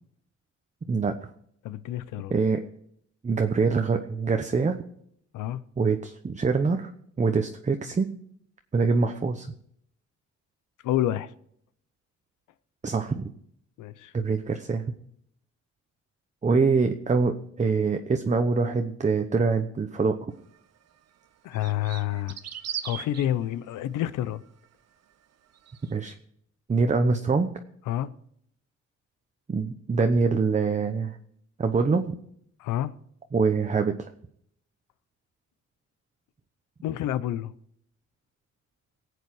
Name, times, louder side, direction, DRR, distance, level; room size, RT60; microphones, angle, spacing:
voice 1, 1.6-2.3 5.3-5.6 10.8-11.3 13.8-14.1 21.4-22.4 22.8-24.4 27.9-28.1 32.6-32.9 36.8-37.5, left 12 dB, 85° left, 0.7 m, -28 dB
voice 2, 2.3-2.6 3.2-4.8 5.8-6.9 7.2-8.1 8.7-9.5 12.8-13.3 14.1-14.8 16.4-20.2 25.9-26.1 26.7-27.5 29.5-31.2 31.6-32.1 33.3-34.1, right 4 dB, 25° right, 0.9 m, -24 dB
sound 1, 20.5-20.6 21.5-23.2 25.6-25.9, right 9 dB, 55° right, 0.9 m, -37 dB
19.0 x 8.1 x 4.8 m
cardioid pair, 90°, 30 cm